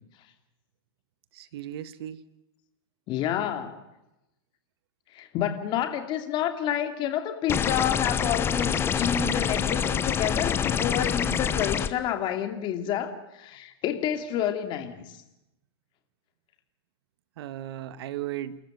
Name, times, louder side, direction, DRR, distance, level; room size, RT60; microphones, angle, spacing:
voice 1, 1.3-2.2 17.4-18.6, right 12 dB, 65° right, 15 dB, 1.5 m, -36 dB
voice 2, 3.1-3.8 5.1-15.2, left 10 dB, 35° left, 7 dB, 2.7 m, -29 dB
sound 1, 7.5-11.9, left 7 dB, 15° left, 0.9 m, -26 dB
29.5 x 13.5 x 9.1 m, 0.90 s
supercardioid pair, 145°, 14 cm